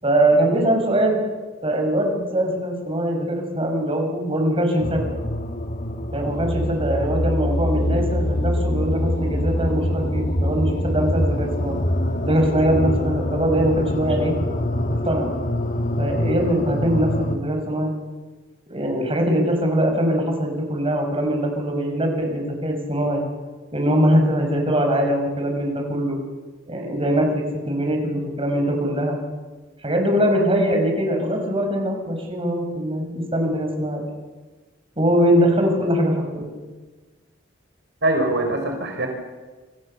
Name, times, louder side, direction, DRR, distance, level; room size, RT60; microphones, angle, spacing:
voice 1, 0.0-1.2 1.6-5.1 6.1-11.8 12.2-14.4 15.0-15.3 16.0-17.9 18.7-23.2 23.7-26.2 26.7-29.2 29.8-34.0 35.0-36.5, equal, 30° right, 3 dB, 6.4 m, -22 dB
sound 1, 4.8-17.4, left 1 dB, 45° left, 2.1 m, -24 dB
voice 2, 38.0-39.1, right 2 dB, 65° right, 3 dB, 4.2 m, -22 dB
29.0 x 26.0 x 7.0 m, 1.3 s
head